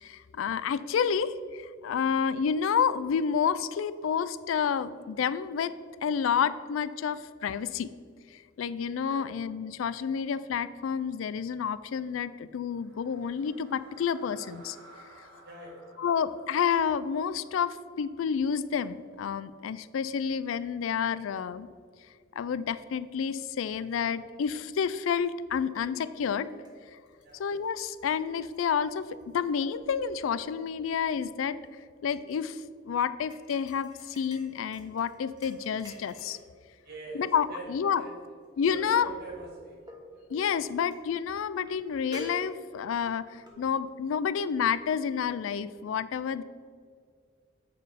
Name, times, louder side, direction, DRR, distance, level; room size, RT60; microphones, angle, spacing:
voice 1, 0.0-5.7 6.0-7.9 8.3-14.8 16.0-21.7 22.4-26.5 26.9-27.0 27.4-31.6 32.0-36.4 37.1-38.0 38.6-39.1 40.3-46.4, left 7 dB, 80° left, 15 dB, 0.4 m, -29 dB
sound 1, 12.6-18.8, right 2 dB, 85° right, 1.9 m, -56 dB
voice 2, 15.4-15.8 27.2-27.4 36.8-37.7 37.9-38.1 38.7-39.8 40.1-40.3, right 3 dB, 55° right, -1 dB, 2.1 m, -44 dB
sound 2, 25.7-25.9 26.3-29.3 29.7-30.2 30.6-32.4 33.3-36.5 37.1-37.7 38.7-39.4 39.9-40.0 40.3-40.5 40.9-41.0 41.6-41.8 42.1-42.9 43.5-43.6, equal, 20° right, 1.4 m, -48 dB
8.1 x 4.6 x 5.0 m, 2.1 s
head